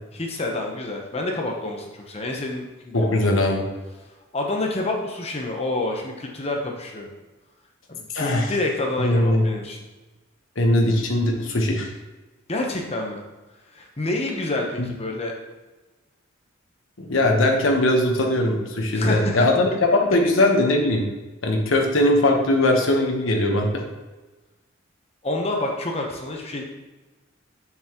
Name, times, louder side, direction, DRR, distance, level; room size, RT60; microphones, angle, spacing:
voice 1, 0.1-3.3 4.3-7.1 7.9-9.8 12.5-13.2 13.7-15.3 17.6-17.8 18.9-19.5 20.4-20.5 25.2-26.6, left 2 dB, 30° left, 1 dB, 1.0 m, -28 dB
voice 2, 2.9-3.7 8.1-8.5 9.0-9.5 10.6-11.9 14.8-14.9 17.0-21.1 21.4-23.8, left 1 dB, 75° left, 1 dB, 1.1 m, -20 dB
7.0 x 6.9 x 3.0 m, 1.2 s
head